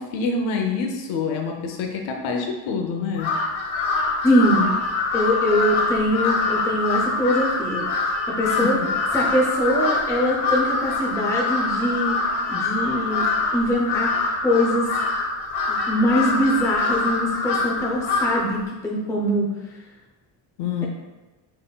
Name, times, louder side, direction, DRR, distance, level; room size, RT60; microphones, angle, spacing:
voice 1, 0.0-3.3 8.5-8.9 20.6-20.9, left 4 dB, 90° left, 2 dB, 0.8 m, -26 dB
Crow, 3.2-18.5, left 3 dB, 60° left, 0.9 m, -24 dB
voice 2, 4.2-4.7 5.1-7.8 8.3-8.8 9.1-12.2 12.5-13.3 13.5-14.1 14.4-14.9 15.7-19.5, equal, 5° left, -2 dB, 0.4 m, -22 dB
5.2 x 4.0 x 2.2 m, 1.1 s
cardioid pair, 140°, 45 cm